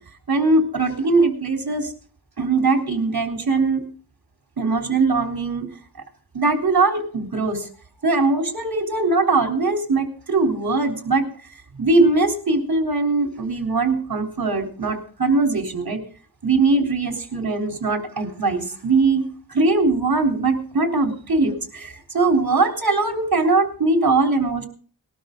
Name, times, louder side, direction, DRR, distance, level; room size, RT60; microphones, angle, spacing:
voice 1, 0.3-1.9 2.4-3.8 4.6-5.7 6.3-7.7 8.0-11.3 11.8-16.0 16.4-24.6, right 3 dB, 60° right, 3 dB, 3.7 m, -21 dB
20.5 x 12.5 x 3.8 m, 0.43 s
wide cardioid pair, 80°, 41 cm